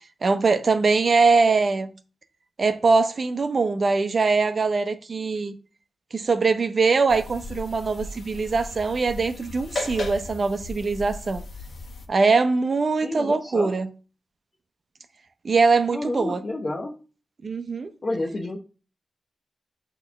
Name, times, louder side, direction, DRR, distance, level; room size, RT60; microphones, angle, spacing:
voice 1, 0.2-1.9 2.6-5.5 6.1-11.4 12.1-13.9 15.4-16.4 17.4-17.9, right 4 dB, 50° right, 0.6 m, -22 dB
sound 1, 7.1-12.1, left 2 dB, 70° left, 1.0 m, -36 dB
voice 2, 13.0-13.7 15.9-16.9 18.0-18.6, left 2 dB, 40° left, 0.8 m, -30 dB
6.3 x 3.0 x 5.6 m
wide cardioid pair, 110°, 0 cm